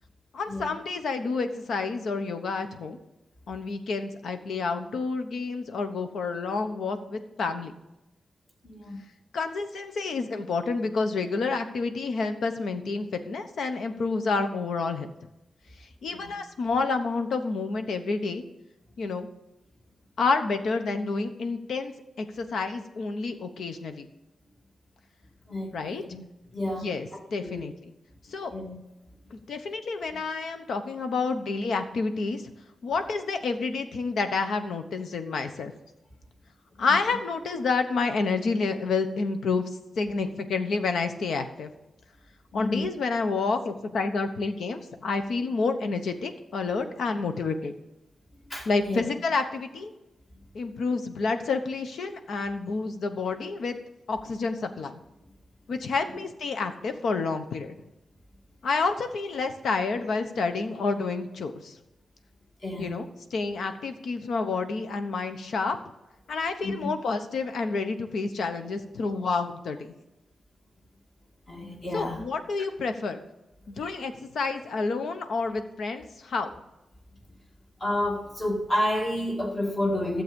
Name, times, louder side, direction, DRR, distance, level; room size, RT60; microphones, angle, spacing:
voice 1, 0.3-3.0 3.5-7.7 9.3-15.1 16.0-18.4 19.0-19.3 20.2-24.1 25.7-26.0 26.7-27.7 28.3-28.5 29.3-32.4 32.8-35.7 36.8-39.6 40.0-41.7 42.5-47.7 48.7-49.9 50.5-53.8 54.1-55.0 55.7-57.7 58.6-61.7 62.8-63.1 63.3-65.8 66.3-69.9 71.9-73.2 73.7-76.6, left 4 dB, 80° left, 8 dB, 1.0 m, -29 dB
voice 2, 8.6-9.0 16.1-16.3 23.2-23.3 25.5-26.2 26.5-26.9 27.4-27.7 28.5-28.8 30.1-30.2 42.5-42.9 48.4-49.1 56.1-56.2 62.6-62.9 66.6-66.9 71.5-72.2 77.8-80.2, left 1 dB, 30° left, 0 dB, 2.2 m, -30 dB
12.5 x 7.7 x 5.3 m, 0.94 s
wide cardioid pair, 170°, 0 cm